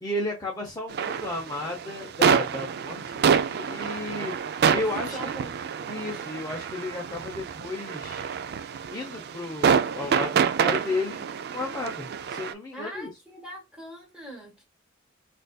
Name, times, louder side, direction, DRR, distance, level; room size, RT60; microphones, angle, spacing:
voice 1, 0.0-5.2 5.9-8.3 8.9-13.1, left 2 dB, 20° left, 0.7 m, -34 dB
sound 1, 0.9-12.5, right 7 dB, 50° right, 0.3 m, -27 dB
voice 2, 4.7-5.6 12.7-14.6, equal, 5° right, 1.3 m, -41 dB
3.9 x 2.6 x 2.3 m
head